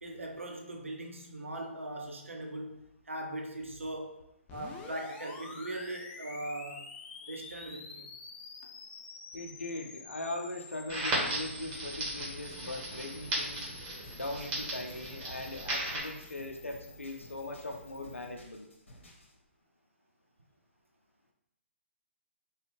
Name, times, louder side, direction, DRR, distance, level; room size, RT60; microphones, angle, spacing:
voice 1, 0.0-2.8 3.1-4.2 4.5-6.9 7.2-8.1, right 1 dB, 80° right, 2 dB, 0.6 m, -40 dB
sound 1, 4.5-18.3, left 4 dB, 20° left, 0.4 m, -50 dB
voice 2, 9.3-13.7 14.1-18.7, left 2 dB, 85° left, 3 dB, 0.5 m, -40 dB
Crackle, 10.9-16.0, right 1 dB, 20° right, 1.1 m, -36 dB
sound 2, 14.0-19.3, equal, 70° left, 1.0 m, -54 dB
3.7 x 2.2 x 3.3 m, 0.81 s
figure-of-eight pair, 125°, 7 cm